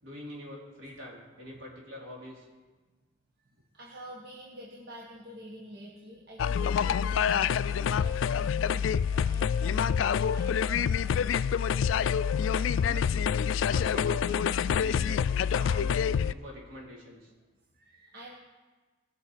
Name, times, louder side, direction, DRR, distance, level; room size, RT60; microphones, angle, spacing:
voice 1, 0.0-2.5 12.1-13.4 13.7-15.3 15.5-17.3, left 1 dB, 80° right, -3 dB, 3.9 m, -45 dB
voice 2, 3.7-11.3 17.7-18.4, equal, 55° right, -3 dB, 1.6 m, -47 dB
sound 1, 6.4-16.3, left 7 dB, 80° left, 0.3 m, -27 dB
19.5 x 6.5 x 5.1 m, 1.3 s
head